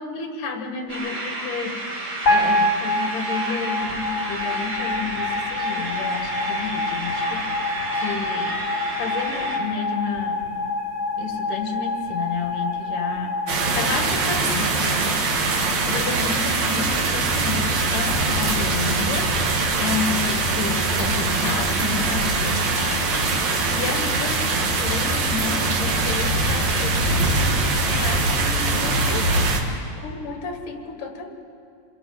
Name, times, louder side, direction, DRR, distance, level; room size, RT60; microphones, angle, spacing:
voice 1, 0.0-1.8 2.3-8.6 9.0-10.5 11.2-29.3 30.0-31.3, left 5 dB, 70° left, 4 dB, 3.4 m, -31 dB
sound 1, 0.9-9.6, right 2 dB, 30° right, 3.2 m, -31 dB
sound 2, 2.3-14.5, left 2 dB, 40° left, 3.7 m, -27 dB
sound 3, 13.5-29.6, right 3 dB, 60° right, 3.0 m, -22 dB
26.0 x 21.0 x 5.9 m, 2.3 s
omnidirectional pair, 3.9 m